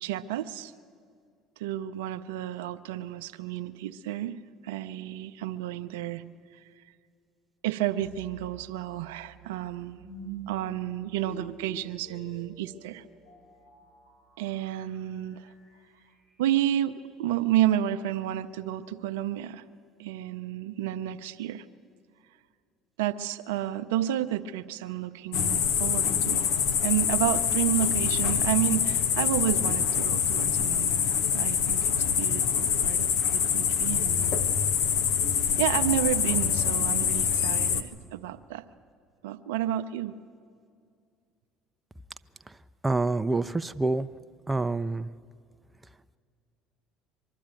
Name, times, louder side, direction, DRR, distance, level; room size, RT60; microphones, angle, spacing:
voice 1, 0.0-0.7 1.6-4.4 4.6-6.2 7.6-10.0 10.5-13.0 14.4-15.4 16.4-19.6 20.0-21.6 23.0-26.5 26.8-34.4 35.6-38.6 39.2-40.1, right 12 dB, 80° right, 10 dB, 0.6 m, -31 dB
sound 1, 8.0-17.1, right 4 dB, 90° left, 7.1 m, -48 dB
sound 2, 25.3-37.8, left 8 dB, 75° left, 1.0 m, -25 dB
voice 2, 42.8-44.1 44.5-45.1, right 3 dB, 15° right, 11 dB, 0.5 m, -27 dB
23.5 x 12.5 x 9.0 m, 2.3 s
hypercardioid pair, 70°, 0 cm